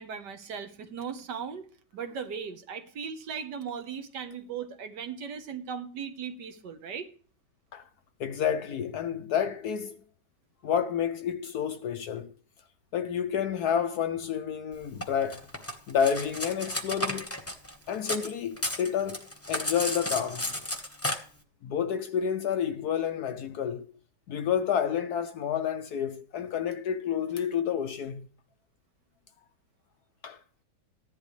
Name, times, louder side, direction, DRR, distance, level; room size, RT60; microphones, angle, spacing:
voice 1, 0.0-7.1, right 7 dB, 65° right, 1.6 m, -38 dB
voice 2, 8.2-10.0 10.6-12.3 12.9-15.5 15.9-17.3 17.9-20.5 21.6-23.9 24.3-28.3 30.2-30.4, left 8 dB, 65° left, 1.0 m, -29 dB
Cutlery silverware, 15.0-18.3 18.6-21.1, left 1 dB, 10° left, 1.0 m, -33 dB
15.0 x 11.0 x 3.2 m
omnidirectional pair, 2.1 m